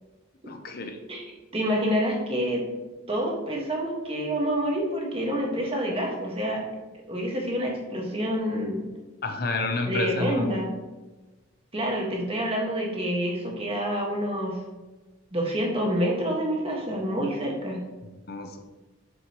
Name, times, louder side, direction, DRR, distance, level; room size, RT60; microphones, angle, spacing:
voice 1, 0.5-1.0 9.2-10.4 18.3-18.6, left 3 dB, 50° left, 6 dB, 0.6 m, -29 dB
voice 2, 1.5-2.6 3.1-6.6 7.1-8.9 9.9-10.7 11.7-14.6 15.3-17.8, equal, 30° right, -1 dB, 1.6 m, -27 dB
7.4 x 6.6 x 3.0 m, 1.2 s
head